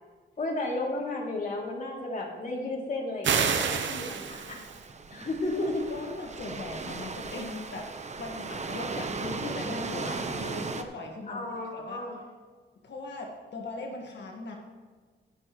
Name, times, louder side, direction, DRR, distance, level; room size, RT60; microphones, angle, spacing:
voice 1, 0.4-4.6 5.1-5.8 11.3-12.2, left 2 dB, 40° left, -3 dB, 2.9 m, -33 dB
sound 1, 3.2-4.8, right 6 dB, 70° right, 0.9 m, -28 dB
sound 2, 3.3-10.8, right 4 dB, 35° right, 0.9 m, -37 dB
voice 2, 5.9-7.9 8.2-12.0 12.8-14.6, left 3 dB, 65° left, 1 dB, 1.7 m, -39 dB
20.0 x 6.9 x 3.1 m, 1.4 s
cardioid pair, 100°, 20 cm